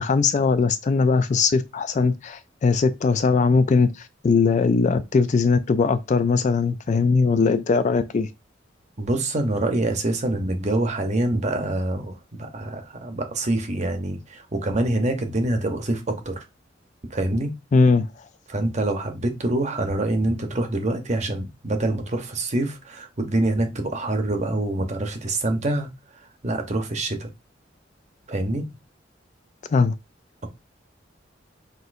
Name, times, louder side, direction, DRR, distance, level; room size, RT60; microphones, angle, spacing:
voice 1, 0.0-8.3 17.7-18.1 29.7-29.9, left 4 dB, 40° left, 0.3 m, -20 dB
voice 2, 9.0-16.4 17.1-17.5 18.5-25.9 26.4-27.3 28.3-28.7, right 2 dB, 40° right, 0.8 m, -25 dB
6.1 x 2.7 x 2.5 m
head